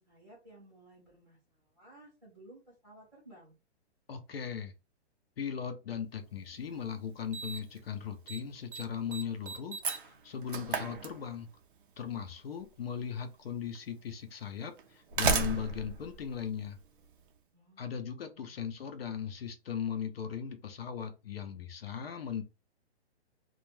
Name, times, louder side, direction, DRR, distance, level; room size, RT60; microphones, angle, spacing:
voice 1, 0.0-3.5 17.5-18.0 18.2-18.7, right 1 dB, ahead, -10 dB, 0.6 m, -57 dB
voice 2, 4.1-4.7 5.4-11.5 12.0-16.8 17.8-22.4, left 7 dB, 60° left, 7 dB, 0.6 m, -38 dB
Slam, 6.5-6.6 7.3-7.8 8.1-8.4 8.7-11.6 12.8-12.9 13.7-13.8 14.8-17.1, right 5 dB, 50° right, 0.4 m, -34 dB
2.3 x 2.2 x 3.0 m, 0.28 s
hypercardioid pair, 175°, 34 cm